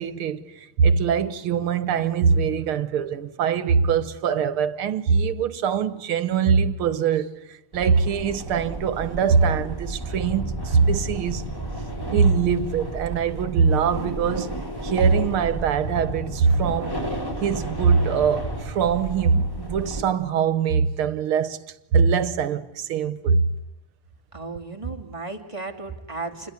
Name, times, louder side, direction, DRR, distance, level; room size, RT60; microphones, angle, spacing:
voice 1, 0.0-11.4 12.1-16.9 17.4-21.6 21.9-23.5, right 6 dB, 80° right, 2.1 m, -22 dB
sound 1, 7.7-20.0, right 1 dB, 10° left, 5.2 m, -32 dB
voice 2, 24.3-26.5, right 3 dB, 15° right, 2.5 m, -34 dB
27.5 x 21.5 x 9.7 m
omnidirectional pair, 2.4 m